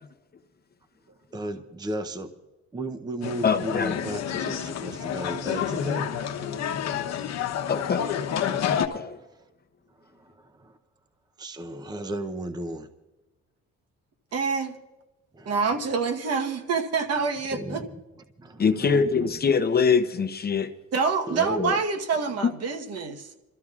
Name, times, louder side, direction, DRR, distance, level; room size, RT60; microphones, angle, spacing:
voice 1, 1.3-2.3 2.7-6.1 10.0-10.8 11.4-12.9 15.3-15.5 17.5-17.9 18.4-19.5 21.3-21.8, right 1 dB, 15° right, 8 dB, 0.7 m, -34 dB
sound 1, 3.2-8.9, left 8 dB, 60° left, 1.0 m, -29 dB
voice 2, 3.4-4.0 7.7-8.1 8.7-9.2 18.6-20.7 21.6-21.8 22.4-22.5, left 6 dB, 30° left, 8 dB, 0.7 m, -23 dB
voice 3, 14.3-14.8 15.5-17.8 20.9-23.3, right 5 dB, 55° right, 7 dB, 1.2 m, -26 dB
28.5 x 13.5 x 2.4 m, 1.1 s
cardioid pair, 120°, 30 cm